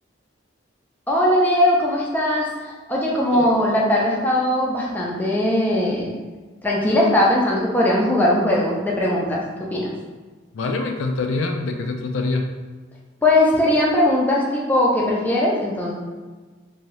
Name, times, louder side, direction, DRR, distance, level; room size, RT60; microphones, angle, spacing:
voice 1, 1.1-6.1 6.6-9.4 9.7-9.9 13.2-15.9, left 1 dB, 10° left, -4 dB, 0.5 m, -19 dB
voice 2, 10.5-12.5, left 3 dB, 75° left, 4 dB, 0.3 m, -25 dB
2.8 x 2.7 x 3.1 m, 1.3 s
head